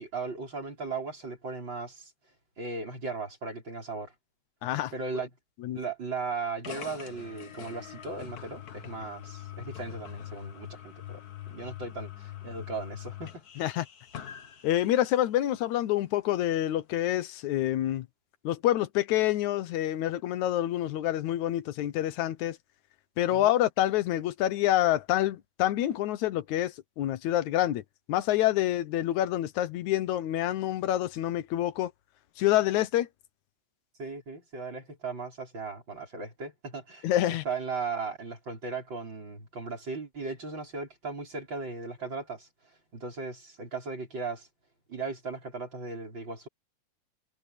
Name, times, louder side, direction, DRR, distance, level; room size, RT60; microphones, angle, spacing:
voice 1, 0.0-2.1 2.6-4.1 4.9-5.3 5.7-11.2 11.5-13.7 23.3-23.5 34.0-42.5 42.9-44.5 44.9-46.5, right 4 dB, 35° right, 6.0 m, -37 dB
voice 2, 4.6-4.9 5.6-5.8 13.6-13.9 14.6-18.1 18.4-22.6 23.2-27.8 28.1-31.9 32.4-33.1 37.0-37.4, left 13 dB, 75° left, 2.3 m, -27 dB
sound 1, 6.6-15.4, left 11 dB, 55° left, 1.0 m, -44 dB
omnidirectional pair, 3.4 m